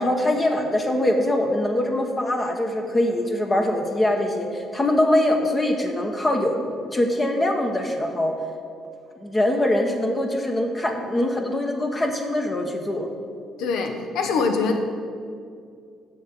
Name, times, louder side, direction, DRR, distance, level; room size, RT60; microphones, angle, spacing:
voice 1, 0.0-6.6 6.9-8.3 9.2-13.1, left 1 dB, 20° left, 3 dB, 0.9 m, -23 dB
voice 2, 13.6-14.8, left 4 dB, 85° left, 5 dB, 1.1 m, -23 dB
7.7 x 6.5 x 7.7 m, 2.3 s
cardioid pair, 135°, 0 cm